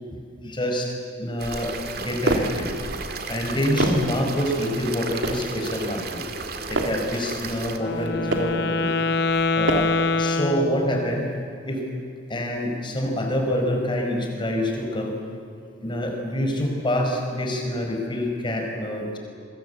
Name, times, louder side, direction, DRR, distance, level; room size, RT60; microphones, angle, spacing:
voice 1, 0.1-2.8 3.3-6.2 6.7-8.9 9.6-9.9 10.2-11.3 11.7-11.8 12.3-15.1 15.8-19.2, left 1 dB, 25° left, 2 dB, 5.3 m, -26 dB
sound 1, 1.4-7.8, right 4 dB, 50° right, 2.3 m, -34 dB
sound 2, 1.8-2.6 3.3-4.2 4.8-5.5 6.2-7.1 7.8-8.6 9.3-10.1, right 2 dB, 80° right, 2.9 m, -29 dB
Wind instrument woodwind instrument, 7.7-11.3, left 3 dB, 55° left, 0.9 m, -25 dB
27.5 x 22.5 x 8.4 m, 2.5 s
head